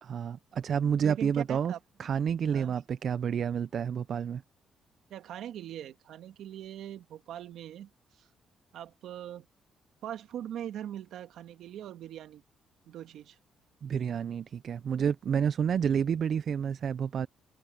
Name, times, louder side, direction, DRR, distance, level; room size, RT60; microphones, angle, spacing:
voice 1, 0.0-4.4 13.8-17.3, right 7 dB, 55° right, 0.6 m, -29 dB
voice 2, 1.0-1.8 2.5-2.7 5.1-7.9 8.2-8.3 8.7-9.5 10.0-12.4 12.9-13.4, right 11 dB, 80° right, 1.8 m, -41 dB
cardioid pair, 90°, 0 cm